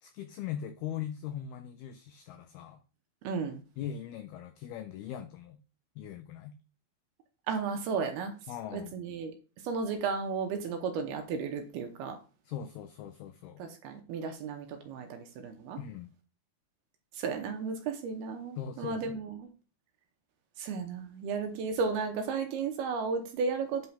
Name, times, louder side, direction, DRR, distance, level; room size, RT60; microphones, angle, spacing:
voice 1, 0.0-2.8 3.8-5.6 6.0-6.5 8.5-8.9 12.5-13.6 15.8-16.1 18.6-19.0, left 10 dB, 85° left, 9 dB, 2.2 m, -40 dB
voice 2, 3.2-3.6 7.5-8.4 8.7-9.3 9.6-12.2 13.6-15.8 17.1-19.5 20.6-23.9, right 5 dB, 75° right, 5 dB, 2.5 m, -34 dB
8.5 x 4.6 x 5.5 m, 0.36 s
omnidirectional pair, 5.2 m